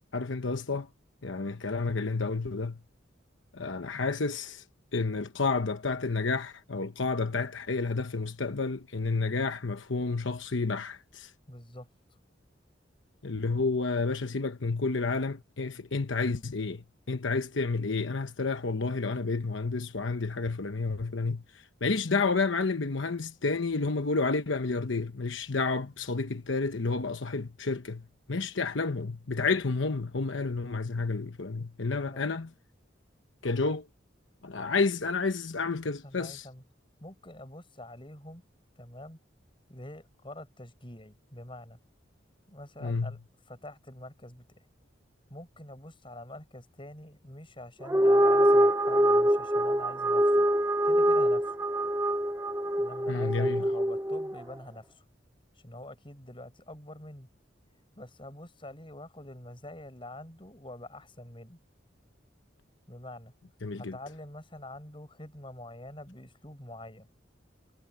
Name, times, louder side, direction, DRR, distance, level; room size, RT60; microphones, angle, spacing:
voice 1, 0.1-0.9 1.2-2.8 3.5-4.6 4.9-11.3 13.2-32.5 33.4-33.9 34.4-36.5 42.8-43.1 53.1-53.6 63.6-64.0, left 3 dB, 85° left, 1.1 m, -30 dB
voice 2, 11.5-11.9 13.4-13.5 32.0-32.3 36.0-36.6 37.0-38.4 38.8-39.2 39.7-41.8 42.5-43.2 43.5-44.7 45.3-50.4 50.8-51.5 52.8-55.0 55.6-57.3 58.0-61.6 62.9-63.3 63.7-67.1, left 1 dB, 25° left, 7.8 m, -46 dB
sound 1, 47.8-54.4, right 1 dB, 15° right, 0.9 m, -24 dB
head